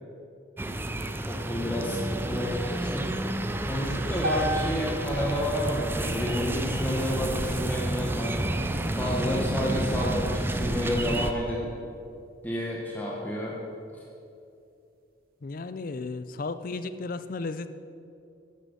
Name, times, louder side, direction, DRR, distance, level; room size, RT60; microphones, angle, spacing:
sound 1, 0.6-11.3, right 1 dB, 10° right, 0.4 m, -30 dB
voice 1, 1.3-3.1 3.6-8.4 8.9-11.7 12.4-13.6, equal, 10° left, -3 dB, 1.1 m, -30 dB
sound 2, 4.2-8.4, equal, 50° right, 0.9 m, -36 dB
voice 2, 15.4-17.7, left 3 dB, 45° left, 12 dB, 0.4 m, -34 dB
10.0 x 7.5 x 6.6 m, 2.6 s
head